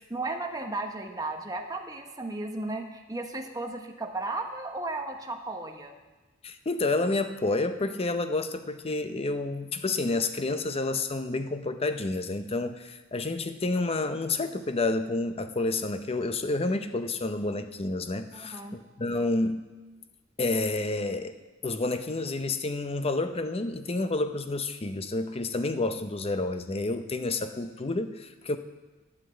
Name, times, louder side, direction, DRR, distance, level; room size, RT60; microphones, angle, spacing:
voice 1, 0.1-6.0 18.3-18.8, right 2 dB, 20° right, 3 dB, 1.1 m, -35 dB
voice 2, 6.4-19.6 20.4-21.3 21.6-28.6, left 2 dB, 30° left, 9 dB, 0.6 m, -29 dB
11.5 x 6.0 x 8.8 m, 1.2 s
head